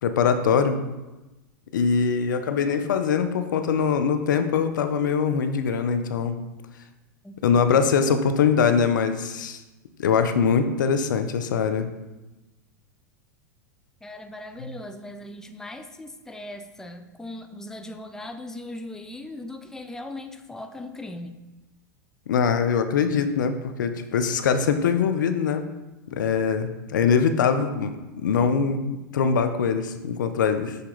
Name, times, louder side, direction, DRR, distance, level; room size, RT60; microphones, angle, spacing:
voice 1, 0.0-0.8 1.7-6.3 7.4-9.6 10.0-11.9 14.6-14.7 22.3-25.7 26.1-30.8, left 6 dB, 80° left, 8 dB, 0.6 m, -23 dB
voice 2, 14.0-21.4, left 1 dB, 5° left, 7 dB, 0.5 m, -39 dB
6.8 x 4.1 x 3.9 m, 1.1 s
hypercardioid pair, 105°, 10 cm